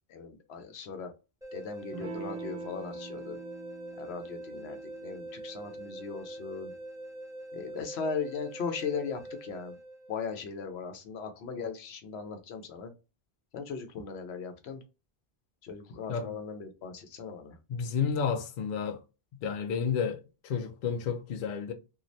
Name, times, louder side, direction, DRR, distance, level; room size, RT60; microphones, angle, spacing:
voice 1, 0.1-1.1 1.5-3.4 4.0-6.7 7.5-9.8 10.1-12.9 13.5-14.8 15.6-17.6, left 5 dB, 85° left, 0.9 m, -38 dB
sound 1, 1.4-10.4, right 1 dB, 5° right, 0.7 m, -44 dB
Electric guitar / Strum, 1.9-7.0, right 4 dB, 45° right, 0.5 m, -45 dB
voice 2, 17.7-19.0 19.4-21.7, left 6 dB, 60° left, 0.6 m, -31 dB
3.1 x 2.4 x 2.6 m
omnidirectional pair, 1.1 m